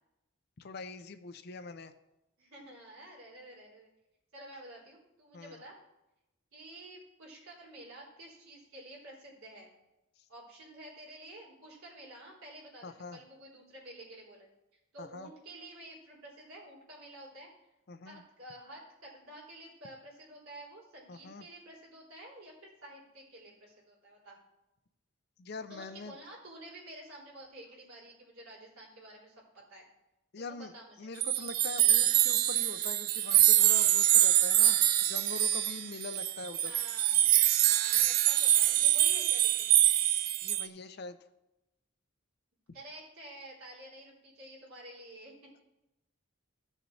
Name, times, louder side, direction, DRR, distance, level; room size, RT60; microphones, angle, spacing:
voice 1, 0.6-1.9 5.3-5.6 12.8-13.2 15.0-15.3 17.9-18.2 21.1-21.4 25.4-26.1 30.3-30.7 31.0-36.7 40.4-41.2, left 4 dB, 50° left, 11 dB, 0.5 m, -43 dB
voice 2, 2.4-3.9 4.3-5.8 6.5-9.7 10.3-14.5 14.9-17.5 18.0-24.4 25.7-29.9 30.4-31.1 36.6-37.3 37.6-39.8 42.7-45.3, right 1 dB, 85° right, -4 dB, 3.8 m, -50 dB
sound 1, 31.2-40.6, right 13 dB, 45° right, 0.3 m, -25 dB
14.5 x 6.5 x 3.3 m, 0.95 s
head